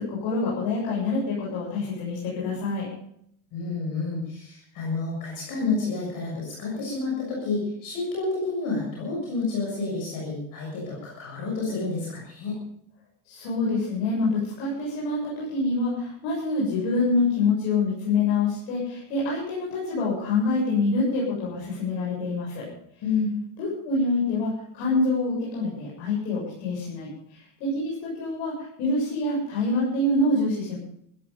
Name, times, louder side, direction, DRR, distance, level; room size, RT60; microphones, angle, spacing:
voice 1, 0.0-2.9 13.2-22.7 23.6-30.8, left 3 dB, 65° left, -5 dB, 7.5 m, -26 dB
voice 2, 3.5-12.6 23.0-23.3, left 3 dB, 40° left, -3 dB, 6.7 m, -29 dB
15.5 x 15.5 x 5.3 m, 0.72 s
cardioid pair, 180°, 50 cm